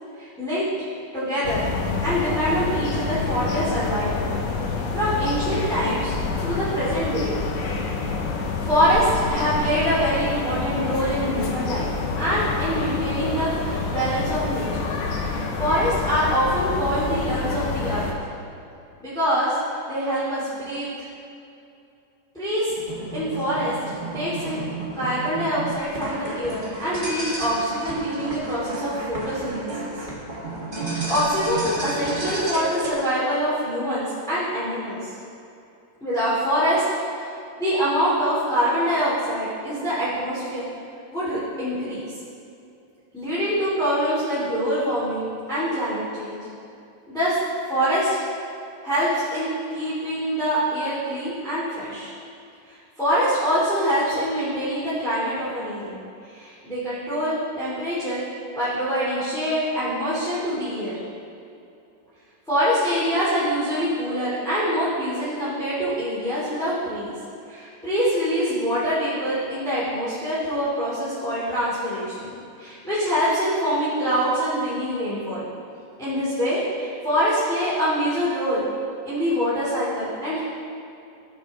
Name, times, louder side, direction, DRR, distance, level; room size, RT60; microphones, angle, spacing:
voice 1, 0.2-0.6 1.1-1.6 2.0-4.3 4.9-6.1 6.4-7.4 8.6-11.9 12.2-14.9 15.2-18.0 19.0-19.6 19.9-21.1 22.3-22.7 23.1-23.7 24.1-24.6 24.9-29.9 30.7-35.1 36.0-36.8 37.1-37.3 37.6-40.7 41.1-42.0 43.1-46.4 47.1-47.4 47.7-48.2 48.8-52.1 52.7-56.0 56.3-58.2 58.5-61.0 62.5-67.1 67.5-72.3 72.6-75.5 76.0-78.6 79.0-80.4, equal, ahead, -11 dB, 2.1 m, -25 dB
sound 1, 1.4-18.1, left 4 dB, 80° left, 2.5 m, -27 dB
sound 2, 22.7-32.9, right 2 dB, 25° right, 1.1 m, -32 dB
14.0 x 7.9 x 3.7 m, 2.6 s
omnidirectional pair, 3.7 m